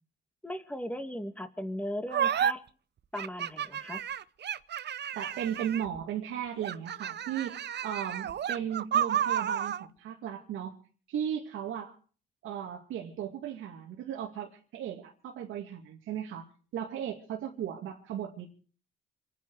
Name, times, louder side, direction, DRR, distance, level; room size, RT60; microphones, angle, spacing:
voice 1, 0.4-2.6 3.1-4.0, left 1 dB, 5° left, 8 dB, 2.2 m, -37 dB
sound 1, 2.1-2.5 3.2-6.0 6.6-9.8, right 9 dB, 55° right, 0.8 m, -31 dB
voice 2, 5.1-10.8 11.1-11.9 12.4-16.5 16.7-18.5, right 9 dB, 90° right, -1 dB, 2.6 m, -36 dB
27.5 x 10.0 x 4.9 m, 0.42 s
cardioid pair, 90°, 20 cm